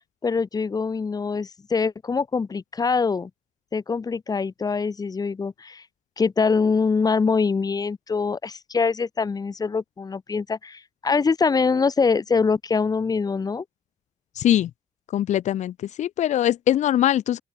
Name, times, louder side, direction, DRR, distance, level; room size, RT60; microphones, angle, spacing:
voice 1, 0.2-3.3 3.7-5.8 6.2-13.6, left 5 dB, 35° left, 2.7 m, -24 dB
voice 2, 14.4-14.7 15.1-17.4, left 11 dB, 85° left, 1.6 m, -22 dB
open air
cardioid pair, 115°, 12 cm